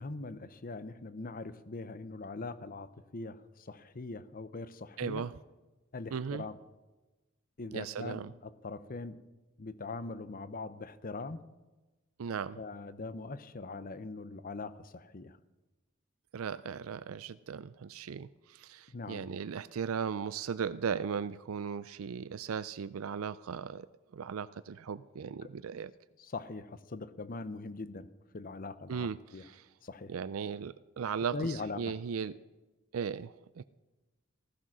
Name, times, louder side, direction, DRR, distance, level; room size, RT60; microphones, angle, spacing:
voice 1, 0.0-5.2 5.9-6.6 7.6-9.2 9.6-11.4 12.6-15.4 18.9-19.3 25.4-25.5 26.2-28.1 28.3-29.4 29.8-30.1 31.3-31.9, left 3 dB, 45° left, 14 dB, 0.8 m, -41 dB
voice 2, 5.0-5.3 6.1-6.4 7.7-8.3 12.2-12.6 16.3-23.9 24.1-25.9 28.9-29.7 30.1-32.3 32.9-33.6, right 6 dB, 85° right, 15 dB, 0.4 m, -37 dB
15.0 x 15.0 x 6.1 m, 1.1 s
head